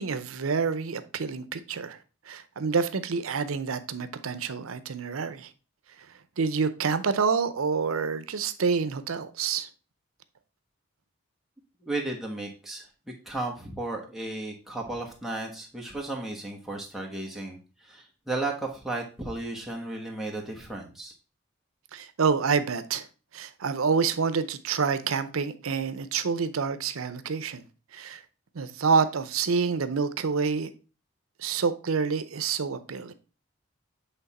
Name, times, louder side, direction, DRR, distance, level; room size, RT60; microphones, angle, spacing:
voice 1, 0.0-2.0 2.3-5.5 6.4-9.7 21.9-23.1 23.3-27.6 27.9-28.2 28.5-30.7 31.4-33.1, right 5 dB, 90° right, 0.6 m, -27 dB
voice 2, 11.8-12.9 13.2-21.1, right 2 dB, ahead, 1.3 m, -34 dB
8.0 x 3.5 x 4.1 m
head